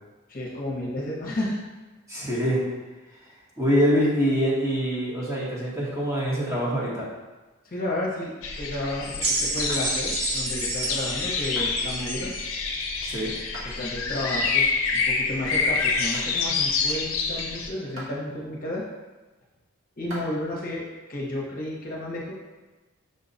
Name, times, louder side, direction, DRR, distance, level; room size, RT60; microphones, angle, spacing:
voice 1, 0.3-1.6 7.6-8.3 8.6-12.3 13.6-18.8 20.0-20.8 21.1-22.3, left 1 dB, 40° left, -4 dB, 0.8 m, -32 dB
voice 2, 2.1-2.6 3.6-7.0 13.0-13.3, equal, 15° right, -7 dB, 1.0 m, -24 dB
sound 1, 8.4-17.7, left 4 dB, 70° left, 0.5 m, -27 dB
sound 2, 9.2-12.5 13.4-13.5, right 3 dB, 90° right, 0.8 m, -30 dB
sound 3, 9.7-10.3 10.8-11.1 11.6-11.8 12.5-12.9 13.5-13.7 14.2-14.3 15.0-15.1 15.6-15.8 16.1-16.4 17.1-17.2 18.0-18.2 19.0-19.1 19.9-20.3, right 1 dB, 65° right, 1.1 m, -41 dB
5.4 x 2.3 x 3.9 m, 1.2 s
head